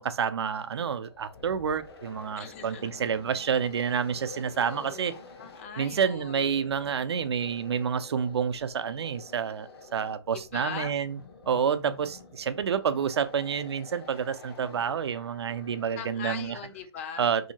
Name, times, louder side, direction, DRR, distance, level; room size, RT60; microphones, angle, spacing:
voice 1, 0.0-5.2 5.8-11.2 11.5-16.6 17.2-17.5, right 7 dB, 70° right, 0.4 m, -29 dB
sound 1, 1.0-17.0, left 4 dB, 65° left, 0.9 m, -49 dB
voice 2, 2.4-2.9 4.2-6.6 10.5-10.9 16.0-17.2, left 6 dB, 30° left, 0.4 m, -40 dB
2.7 x 2.7 x 2.7 m
hypercardioid pair, 145°, 14 cm